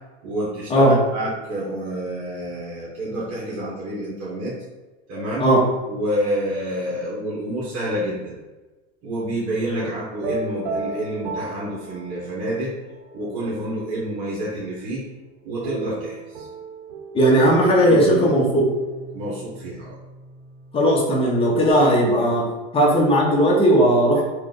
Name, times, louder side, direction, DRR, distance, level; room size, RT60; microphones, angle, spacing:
voice 1, 0.2-4.5 5.1-5.4 5.9-8.4 9.0-12.7 13.1-15.0 15.4-16.5 17.8-18.2 19.1-19.9, right 1 dB, 45° right, -7 dB, 1.2 m, -28 dB
sound 1, 10.1-12.6 13.1-14.0 15.6-21.7, right 3 dB, 80° right, 0.7 m, -35 dB
voice 2, 17.1-18.6 20.7-22.4 22.7-24.2, right 1 dB, 15° left, -2 dB, 0.8 m, -17 dB
3.1 x 2.5 x 3.8 m, 1.2 s
supercardioid pair, 130°, 33 cm